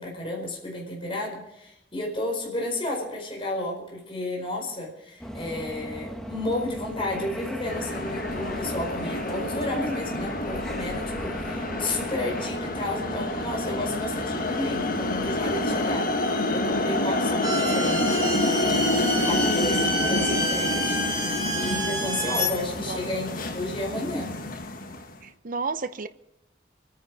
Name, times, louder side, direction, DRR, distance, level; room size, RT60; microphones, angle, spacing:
voice 1, 0.0-16.1 16.5-18.3 19.2-24.4, left 1 dB, 30° left, 4.7 m, -32 dB
sound 1, 5.2-15.8, equal, 5° left, 1.4 m, -36 dB
sound 2, 7.6-25.1, left 2 dB, 55° left, 1.5 m, -28 dB
sound 3, 17.4-22.5, right 3 dB, 25° right, 2.2 m, -30 dB
voice 2, 25.2-26.1, right 4 dB, 50° right, 0.7 m, -32 dB
28.0 x 10.0 x 4.8 m
head